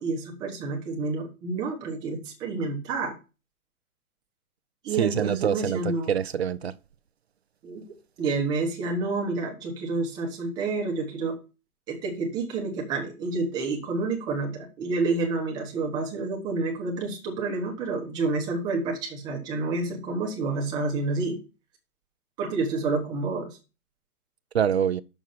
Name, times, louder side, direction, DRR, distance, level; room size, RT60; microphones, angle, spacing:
voice 1, 0.0-3.1 4.8-6.1 7.6-7.8 8.2-11.4 11.9-21.4 22.4-23.6, right 3 dB, 10° right, 1.0 m, -29 dB
voice 2, 4.9-6.7 24.5-25.0, right 8 dB, 45° right, 0.4 m, -25 dB
6.4 x 6.0 x 7.1 m
hypercardioid pair, 170°, 45 cm